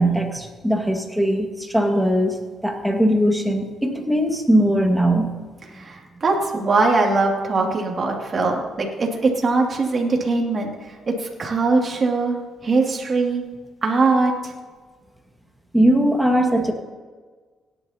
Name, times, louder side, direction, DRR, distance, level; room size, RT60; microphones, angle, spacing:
voice 1, 0.0-5.3 15.7-16.7, right 1 dB, 5° right, 2 dB, 1.9 m, -20 dB
voice 2, 5.7-12.4 12.6-13.4 13.8-14.5, right 3 dB, 40° right, 0 dB, 2.6 m, -21 dB
17.5 x 10.5 x 2.9 m, 1.4 s
cardioid pair, 90°, 0 cm